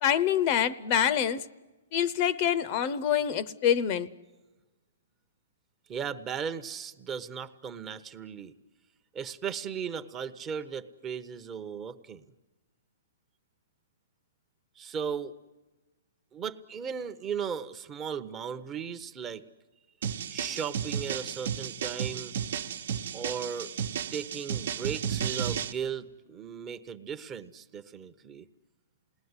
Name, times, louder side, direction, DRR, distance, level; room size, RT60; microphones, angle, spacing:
voice 1, 0.0-1.4 1.9-4.1, left 9 dB, 35° left, 16 dB, 0.8 m, -26 dB
voice 2, 5.9-8.5 9.1-12.2 14.8-15.4 16.3-19.4 20.3-22.3 23.1-23.7 24.1-28.4, right 7 dB, 20° right, 9 dB, 0.9 m, -36 dB
sound 1, 20.0-25.7, right 8 dB, 65° right, 1.1 m, -33 dB
28.0 x 19.5 x 9.7 m, 1.2 s
hypercardioid pair, 155°, 0 cm